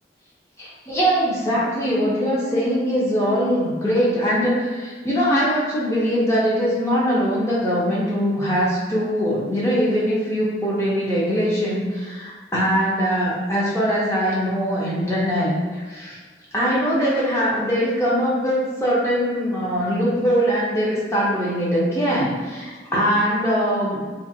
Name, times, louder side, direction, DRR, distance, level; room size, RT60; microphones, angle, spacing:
voice 1, 0.6-16.2 16.5-24.2, equal, 15° left, -7 dB, 0.6 m, -22 dB
2.5 x 2.1 x 2.6 m, 1.4 s
head